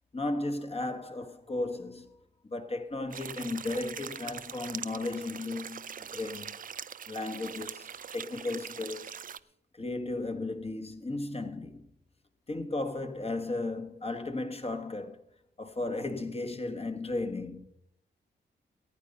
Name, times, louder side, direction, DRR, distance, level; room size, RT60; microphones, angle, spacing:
voice 1, 0.1-2.1 2.5-6.6 7.1-9.2 9.8-11.9 12.5-15.2 15.6-17.7, left 2 dB, 30° left, 1.4 m, -35 dB
sound 1, 3.1-9.4, right 8 dB, 45° right, 0.4 m, -42 dB
14.5 x 9.2 x 5.4 m
cardioid pair, 80°, 19 cm